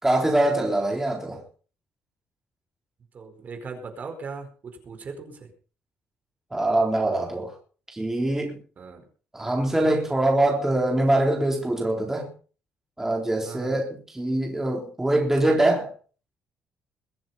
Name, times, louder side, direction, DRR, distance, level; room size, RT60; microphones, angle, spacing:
voice 1, 0.0-1.4 6.5-7.5 7.9-8.6 9.3-12.3 13.0-15.9, right 1 dB, 10° right, 3.8 m, -23 dB
voice 2, 3.1-5.5 8.8-9.0 13.4-13.8, right 4 dB, 45° right, 4.7 m, -38 dB
22.5 x 7.7 x 5.5 m
cardioid pair, 120°, 4 cm